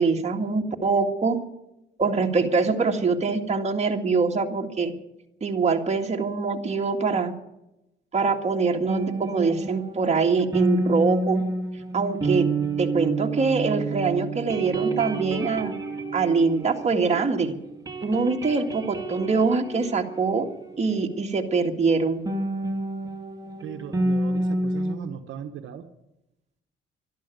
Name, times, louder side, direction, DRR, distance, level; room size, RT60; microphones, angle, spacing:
voice 1, 0.0-1.4 2.0-4.9 5.4-7.3 8.1-11.4 11.9-12.5 12.8-15.7 16.1-17.6 18.0-20.5 20.8-22.2, right 4 dB, 35° right, 3 dB, 2.0 m, -24 dB
sound 1, 8.9-17.4 17.6-21.1 22.3-24.9, right 2 dB, 20° right, 2.9 m, -29 dB
voice 2, 23.6-25.9, right 8 dB, 80° right, 7 dB, 1.1 m, -38 dB
12.5 x 12.0 x 9.2 m, 0.90 s
cardioid pair, 90°, 20 cm